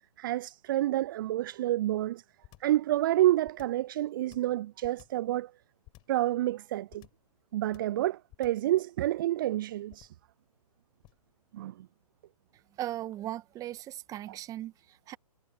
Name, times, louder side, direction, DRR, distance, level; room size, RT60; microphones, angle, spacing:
voice 1, 0.2-2.2 2.6-5.5 6.1-7.1 7.5-10.1 11.5-11.9, right 14 dB, 35° right, 0.6 m, -29 dB
sound 1, 2.4-2.8 3.4-3.9 4.3-5.3 5.8-6.2 6.9-7.3 7.7-8.0 8.3-8.7 9.9-10.3 11.0-11.3, left 19 dB, 25° left, 6.5 m, -55 dB
voice 2, 12.8-15.2, right 13 dB, 15° right, 1.8 m, -38 dB
figure-of-eight pair, 130°, 20 cm